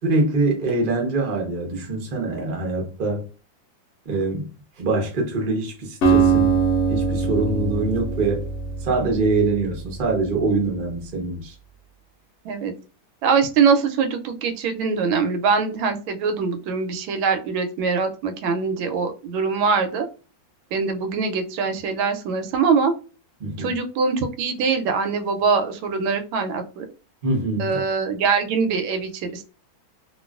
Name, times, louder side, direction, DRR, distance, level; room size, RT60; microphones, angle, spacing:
voice 1, 0.0-3.2 4.1-4.5 4.8-6.5 6.9-8.5 8.8-11.5 23.4-23.7 27.2-27.8, right 3 dB, 65° right, 0.5 m, -24 dB
Acoustic guitar, 6.0-10.1, right 5 dB, 75° left, 0.6 m, -22 dB
voice 2, 13.2-20.1 20.7-22.9 23.6-26.8 27.6-29.5, right 5 dB, 90° right, 1.4 m, -23 dB
3.0 x 2.5 x 2.3 m
omnidirectional pair, 2.2 m